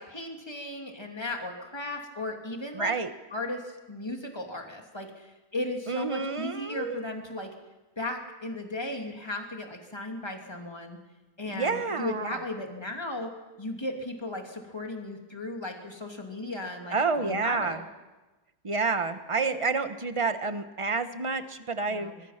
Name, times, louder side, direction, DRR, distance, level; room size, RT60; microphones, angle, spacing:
voice 1, 0.0-2.9 3.3-7.5 8.0-11.0 11.4-13.3 13.6-17.8 21.9-22.2, left 2 dB, 15° left, 2 dB, 2.8 m, -36 dB
voice 2, 2.7-3.1 5.9-7.0 11.4-12.3 16.9-17.8 18.6-22.1, right 4 dB, 20° right, 9 dB, 1.1 m, -29 dB
25.5 x 21.0 x 5.9 m, 1.1 s
omnidirectional pair, 1.7 m